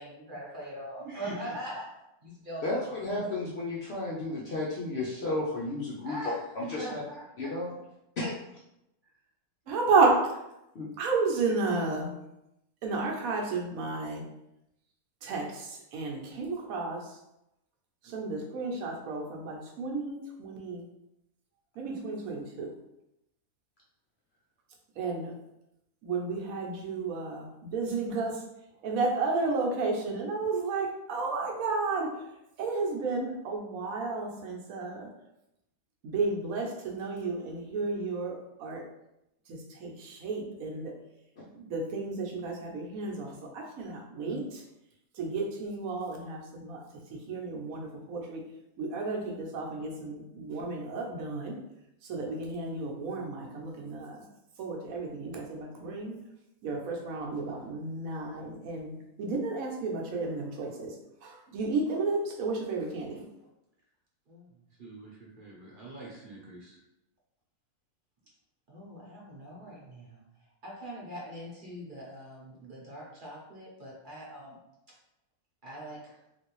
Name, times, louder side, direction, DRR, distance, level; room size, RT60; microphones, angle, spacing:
voice 1, 0.0-1.9 2.2-3.4 6.0-7.5 9.7-9.9 64.3-64.5 64.8-66.8 68.7-70.2 70.6-74.6 75.6-76.2, right 1 dB, 40° right, -5 dB, 0.8 m, -42 dB
voice 2, 2.6-6.2 6.6-6.9 7.4-7.7 8.2-8.3 10.7-10.9 44.3-44.4, left 2 dB, 65° left, -4 dB, 0.6 m, -33 dB
voice 3, 9.7-10.2 11.0-12.1 12.8-14.2 15.2-17.2 18.0-20.8 21.8-22.7 25.0-25.3 26.0-28.4 28.8-32.2 32.6-35.1 36.0-38.8 39.5-40.9 41.5-44.6 45.1-46.8 47.1-48.4 48.8-51.6 52.0-54.2 54.6-56.1 56.6-58.9 59.2-60.9 61.2-63.2, right 3 dB, 70° right, 0 dB, 1.1 m, -32 dB
3.2 x 2.6 x 3.0 m, 0.86 s
omnidirectional pair, 1.6 m